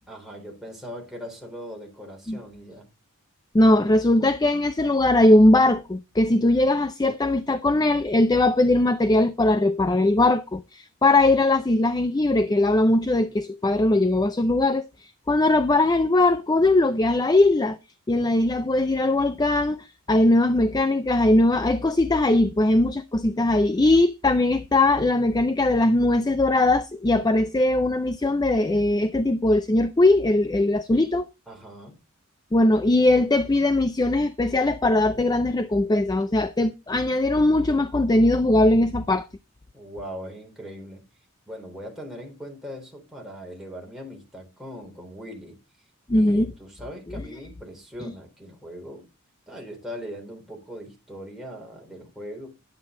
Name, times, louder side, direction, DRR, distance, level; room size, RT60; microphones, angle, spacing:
voice 1, 0.1-2.9 31.5-31.9 39.7-41.1 41.5-45.6 46.1-49.1 49.5-52.5, equal, ahead, 3.6 m, -40 dB
voice 2, 3.5-17.8 18.1-31.3 32.5-39.3 46.1-46.5, left 2 dB, 20° left, 0.4 m, -20 dB
10.5 x 9.0 x 3.7 m
head